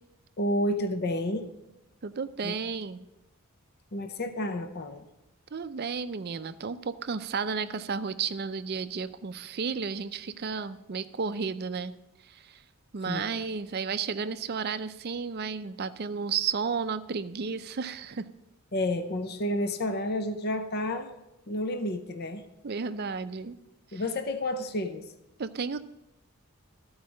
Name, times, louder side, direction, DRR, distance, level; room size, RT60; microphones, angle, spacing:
voice 1, 0.4-1.5 2.4-2.6 3.9-5.0 13.0-13.3 18.7-21.1 21.5-22.4 23.9-25.1, left 1 dB, 45° left, 8 dB, 0.6 m, -30 dB
voice 2, 2.0-3.1 5.5-11.9 12.2-12.6 12.9-18.2 22.6-23.6 23.9-24.0 25.4-25.8, right 5 dB, 45° right, 12 dB, 0.5 m, -33 dB
14.0 x 4.7 x 6.3 m, 0.93 s
head